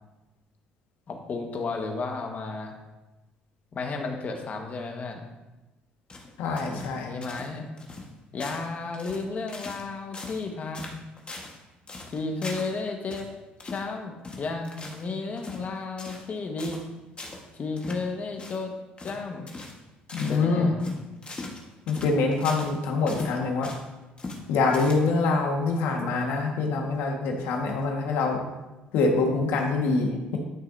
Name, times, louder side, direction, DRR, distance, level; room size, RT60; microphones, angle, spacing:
voice 1, 1.1-2.8 3.7-5.2 6.9-7.7 8.3-11.0 12.1-13.3 13.6-16.8 17.5-18.7 19.0-19.5 20.3-20.9, left 3 dB, 45° left, 3 dB, 1.5 m, -33 dB
sound 1, 6.1-7.0 7.2-7.5 7.8-8.1 8.4-8.7 8.9-9.9 10.1-10.5 10.7-11.6 11.9-12.7 13.1-13.3 13.6-13.9 14.2-15.1 15.4-15.7 16.0-16.3 16.6-16.9 17.2-17.4 17.8-18.0 18.4-18.6 19.0-19.2 19.5-19.8 20.1-20.4 20.8-22.8 23.1-23.9 24.2-24.4 24.7-25.3, left 2 dB, 30° left, 1.5 m, -40 dB
voice 2, 6.4-7.1 20.1-20.7 21.9-23.7 24.5-28.4 28.9-30.4, left 3 dB, 80° left, 1 dB, 1.6 m, -25 dB
12.0 x 6.5 x 2.7 m, 1.1 s
cardioid pair, 90°, 4 cm